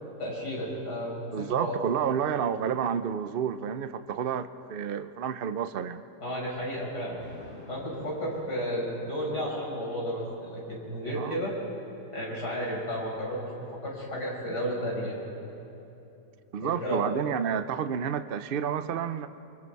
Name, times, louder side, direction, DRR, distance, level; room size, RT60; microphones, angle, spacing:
voice 1, 0.2-2.0 6.2-7.2 7.7-11.5 12.1-15.3 16.6-17.0, equal, 70° left, -4 dB, 6.1 m, -33 dB
voice 2, 1.3-6.0 11.2-11.4 16.5-19.3, right 8 dB, 65° right, 11 dB, 0.5 m, -30 dB
Thunder, 7.2-9.7, left 1 dB, 15° right, 6.1 m, -49 dB
29.0 x 23.5 x 4.7 m, 2.9 s
omnidirectional pair, 1.8 m